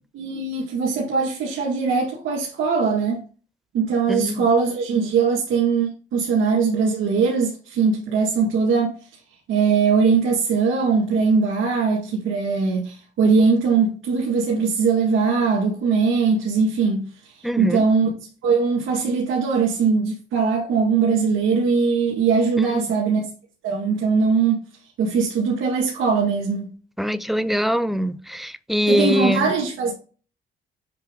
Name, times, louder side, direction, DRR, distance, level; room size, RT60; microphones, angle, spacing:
voice 1, 0.1-3.2 3.7-8.9 9.5-17.1 17.4-18.1 18.4-23.2 23.6-24.6 25.0-26.7 28.9-29.9, right 5 dB, 90° right, 2.0 m, -21 dB
voice 2, 4.1-4.5 17.4-17.8 22.6-22.9 27.0-29.5, equal, ahead, 0.4 m, -23 dB
7.5 x 3.3 x 3.8 m
cardioid pair, 90°, 20 cm